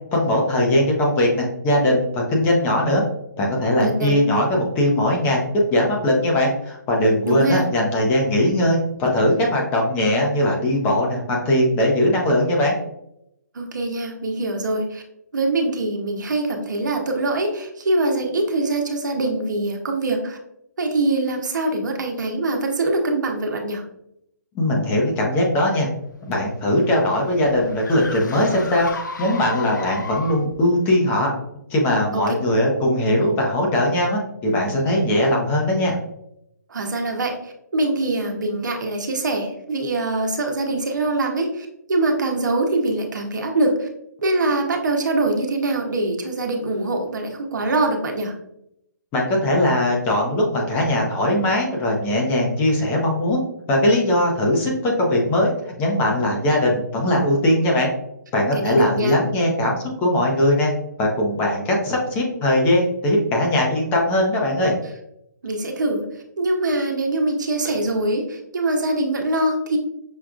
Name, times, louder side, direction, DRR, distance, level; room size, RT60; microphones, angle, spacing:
voice 1, 0.1-3.0 3.4-5.4 5.7-12.7 24.5-25.9 26.3-31.3 31.7-36.0 49.1-53.4 53.7-57.9 58.3-60.7 61.0-64.7, left 1 dB, 20° left, -1 dB, 0.8 m, -20 dB
voice 2, 3.8-4.2 7.2-7.6 13.5-15.0 15.3-20.4 20.8-23.8 32.1-32.3 36.7-43.9 44.2-48.3 58.5-59.2 65.4-66.0 66.4-69.8, right 2 dB, 75° right, 2 dB, 0.9 m, -23 dB
sound 1, 26.1-30.6, left 4 dB, 85° left, 0.7 m, -34 dB
6.1 x 2.4 x 2.4 m, 0.79 s
hypercardioid pair, 155°, 10 cm